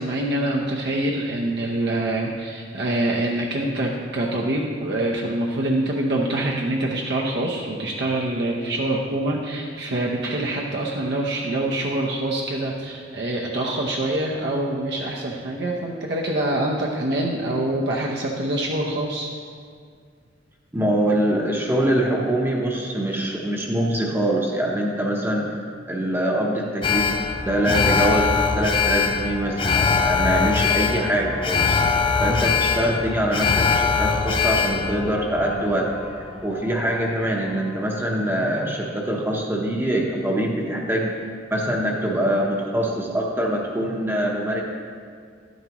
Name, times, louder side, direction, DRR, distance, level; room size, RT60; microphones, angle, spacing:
voice 1, 0.0-19.3, right 1 dB, 60° right, -2 dB, 0.8 m, -25 dB
voice 2, 20.7-25.6 25.9-27.2 27.5-31.7 32.2-35.9 36.2-41.1 41.5-44.6, right 1 dB, 10° right, -2 dB, 0.8 m, -24 dB
Alarm, 26.8-37.1 37.4-37.5, left 5 dB, 25° left, 0.4 m, -22 dB
11.0 x 9.3 x 3.0 m, 2.1 s
head